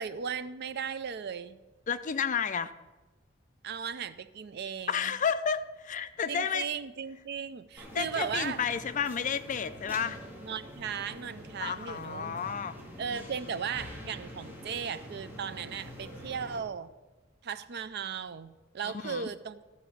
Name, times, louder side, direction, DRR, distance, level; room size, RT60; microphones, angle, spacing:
voice 1, 0.0-1.6 3.6-5.1 6.3-8.6 10.4-12.5 13.0-16.9 17.4-19.6, right 7 dB, 55° right, 15 dB, 0.4 m, -36 dB
voice 2, 1.9-2.7 4.9-6.7 7.9-10.2 11.6-12.8 13.1-13.3 18.8-19.3, left 7 dB, 40° left, 12 dB, 0.4 m, -31 dB
sound 1, 7.8-16.6, equal, 10° right, 2.1 m, -46 dB
13.5 x 4.8 x 7.0 m, 1.2 s
head